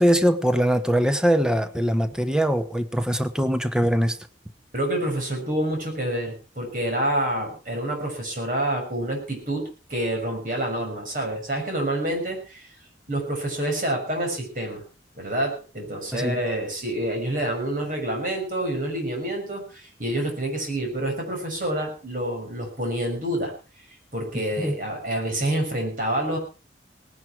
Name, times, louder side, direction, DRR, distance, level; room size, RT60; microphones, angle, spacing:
voice 1, 0.0-4.2 16.1-16.4 24.6-24.7, equal, 5° right, 10 dB, 1.0 m, -22 dB
voice 2, 4.7-12.7 13.1-14.8 15.2-23.5 24.1-26.4, right 1 dB, 50° right, 2 dB, 6.5 m, -27 dB
18.5 x 11.0 x 4.8 m, 0.35 s
head